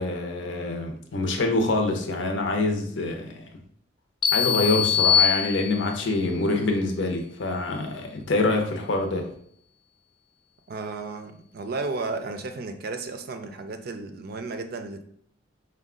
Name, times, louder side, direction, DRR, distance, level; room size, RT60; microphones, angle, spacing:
voice 1, 0.0-3.4 4.3-9.3, left 2 dB, 70° left, 3 dB, 0.7 m, -25 dB
sound 1, 4.2-6.1, left 8 dB, 25° left, 0.3 m, -22 dB
voice 2, 10.7-15.0, right 3 dB, 50° right, 8 dB, 0.4 m, -33 dB
5.1 x 2.2 x 3.7 m, 0.64 s
head